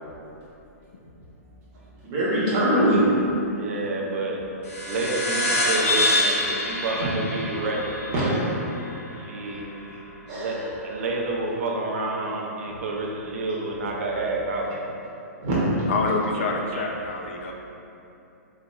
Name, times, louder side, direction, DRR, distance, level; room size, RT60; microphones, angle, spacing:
voice 1, 2.0-3.0 6.9-7.1 8.1-8.5 9.8-9.9 10.3-10.7 15.4-15.8, right 1 dB, 25° right, -9 dB, 0.9 m, -23 dB
voice 2, 3.4-4.4 4.9-8.0 9.2-9.7 10.3-10.6 10.8-14.7, right 2 dB, 60° right, -1 dB, 0.5 m, -29 dB
sound 1, 4.6-9.6, left 1 dB, 65° left, 0.8 m, -26 dB
voice 3, 15.9-17.5, left 3 dB, 50° left, 2 dB, 0.3 m, -26 dB
4.0 x 2.6 x 2.3 m, 2.9 s
hypercardioid pair, 170°, 9 cm